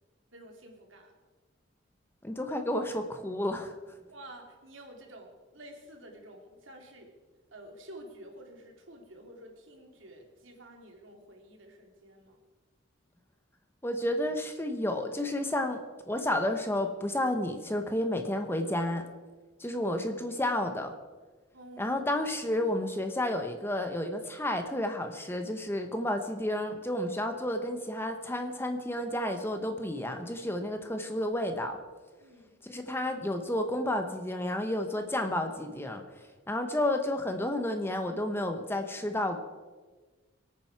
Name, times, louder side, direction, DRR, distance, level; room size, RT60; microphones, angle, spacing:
voice 1, 0.3-1.1 4.1-7.2 7.5-12.4 21.5-22.0 32.2-32.6, right 1 dB, 80° right, 2 dB, 2.8 m, -50 dB
voice 2, 2.2-3.7 13.8-19.1 19.6-20.9 21.8-31.8 32.6-36.0 36.5-39.4, left 1 dB, 10° left, 6 dB, 1.0 m, -31 dB
24.0 x 9.1 x 4.7 m, 1.3 s
head